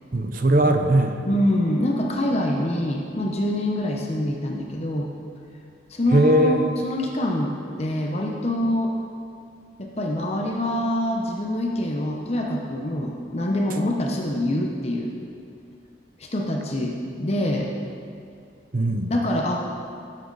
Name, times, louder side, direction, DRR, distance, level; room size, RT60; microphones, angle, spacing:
voice 1, 0.1-1.2 6.1-6.7 18.7-19.1, right 1 dB, 50° right, 6 dB, 0.7 m, -19 dB
voice 2, 1.2-5.1 5.9-7.5 7.8-8.9 9.8-15.1 16.2-17.7 19.1-19.6, left 1 dB, 35° left, 0 dB, 0.9 m, -25 dB
16.5 x 7.5 x 4.0 m, 2.5 s
head